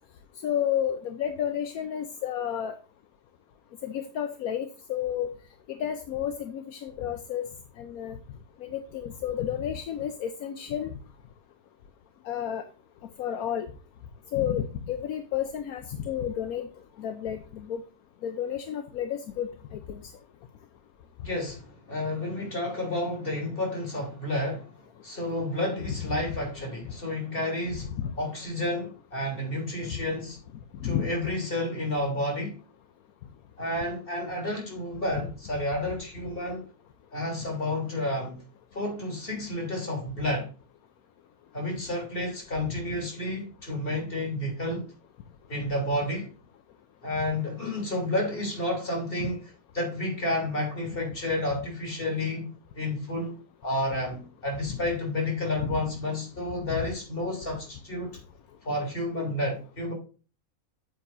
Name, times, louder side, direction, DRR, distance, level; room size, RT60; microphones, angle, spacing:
voice 1, 0.4-2.7 3.8-5.3 5.7-7.5 7.8-8.2 8.6-10.9 12.3-12.6 13.2-13.7 14.3-16.7 17.0-17.8 18.2-20.0 28.0-28.1 30.8-31.1 49.2-49.3 54.7-54.8 55.6-55.7 56.7-56.8, left 9 dB, 75° left, 1.2 m, -31 dB
voice 2, 21.2-24.7 25.0-30.4 30.8-32.6 33.6-36.7 37.1-38.4 38.7-40.5 41.5-44.9 45.5-46.3 47.0-58.2 58.6-59.9, left 1 dB, 40° left, 3.5 m, -31 dB
8.9 x 7.9 x 2.6 m
omnidirectional pair, 1.6 m